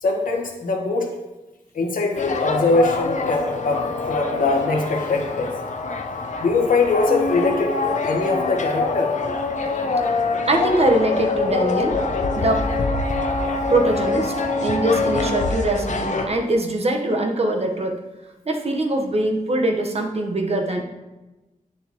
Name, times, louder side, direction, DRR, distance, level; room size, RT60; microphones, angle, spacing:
voice 1, 0.0-1.1 1.7-5.5 6.4-9.1, left 3 dB, 85° left, 1 dB, 1.5 m, -22 dB
sound 1, 2.1-16.3, left 3 dB, 60° left, 0.8 m, -24 dB
voice 2, 10.5-12.0 12.4-12.7 13.7-14.3 14.6-18.0 18.5-20.8, right 1 dB, 50° right, 3 dB, 1.1 m, -22 dB
9.1 x 6.8 x 3.0 m, 1.1 s
wide cardioid pair, 75°, 14 cm